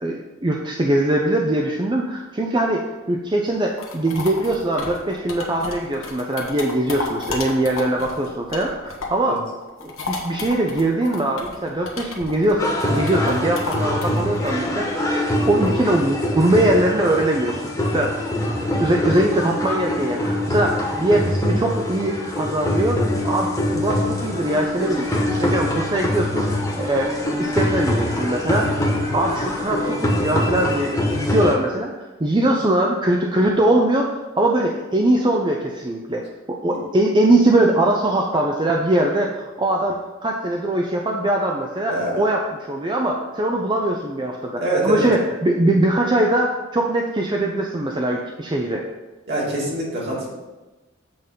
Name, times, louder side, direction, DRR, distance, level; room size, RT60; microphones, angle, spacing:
voice 1, 0.0-9.4 9.8-15.0 15.5-18.1 18.4-25.1 25.4-28.8 29.1-31.9 32.2-36.2 36.5-48.8, right 1 dB, 25° right, 1 dB, 0.5 m, -21 dB
sound 1, 3.5-9.3 9.6-15.9, left 3 dB, 80° left, 1.2 m, -33 dB
sound 2, 12.6-31.5, left 1 dB, 15° left, 1.3 m, -24 dB
voice 2, 41.9-42.2 44.6-45.0 49.3-50.3, right 1 dB, 55° right, -6 dB, 2.5 m, -24 dB
7.7 x 3.7 x 5.6 m, 1.1 s
head